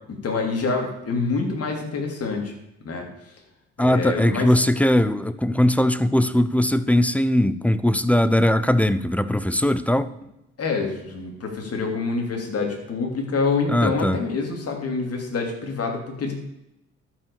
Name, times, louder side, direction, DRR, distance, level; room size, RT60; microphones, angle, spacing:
voice 1, 0.1-2.5 2.8-3.1 3.8-4.5 10.6-16.3, left 4 dB, 50° left, 3.1 m, -26 dB
voice 2, 3.8-10.1 13.7-14.2, left 1 dB, 5° left, 0.6 m, -20 dB
12.5 x 5.6 x 7.0 m
cardioid pair, 90°, 30 cm